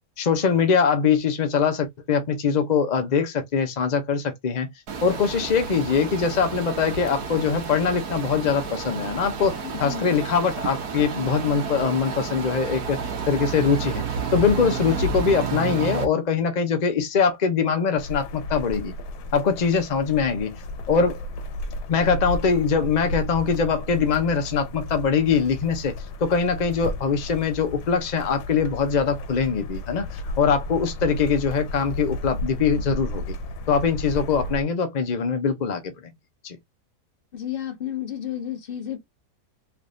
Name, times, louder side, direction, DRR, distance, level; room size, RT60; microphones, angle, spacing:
voice 1, 0.2-4.7 5.0-9.5 9.8-13.0 13.3-18.9 19.3-21.3 21.9-25.9 26.2-33.2 33.7-36.1 36.4-36.6, left 6 dB, 65° left, 0.4 m, -23 dB
sound 1, 4.9-16.0, right 5 dB, 75° right, 1.4 m, -31 dB
sound 2, 18.0-34.6, left 1 dB, 90° left, 1.3 m, -33 dB
voice 2, 37.3-39.0, left 10 dB, 45° left, 0.8 m, -31 dB
3.4 x 3.3 x 2.5 m
omnidirectional pair, 1.7 m